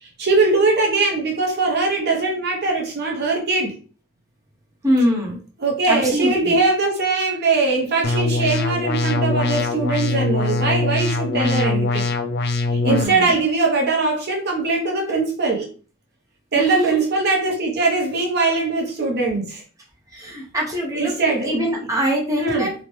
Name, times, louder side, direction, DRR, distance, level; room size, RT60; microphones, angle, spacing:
voice 1, 0.0-3.7 5.6-12.1 12.7-15.7 16.5-19.6 20.9-21.9 22.4-22.7, right 3 dB, 55° right, 0.7 m, -21 dB
voice 2, 4.8-5.4 5.9-6.5 11.3-11.7 12.9-13.3 16.5-17.0 20.1-21.1 21.4-22.7, equal, 15° right, 0.7 m, -23 dB
sound 1, 8.0-13.0, left 2 dB, 55° left, 0.4 m, -22 dB
2.9 x 2.1 x 3.0 m
head